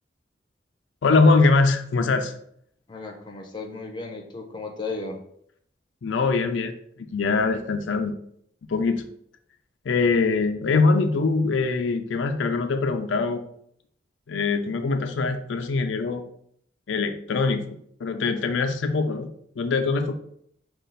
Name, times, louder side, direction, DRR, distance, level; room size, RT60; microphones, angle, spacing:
voice 1, 1.0-2.3 6.0-6.7 7.1-8.1 8.7-9.0 9.9-13.4 14.3-16.2 16.9-17.6 18.0-19.3 19.6-20.1, left 4 dB, 90° left, 6 dB, 0.4 m, -22 dB
voice 2, 2.9-5.2, left 3 dB, 25° left, 2 dB, 0.6 m, -35 dB
5.4 x 2.4 x 3.9 m, 0.68 s
head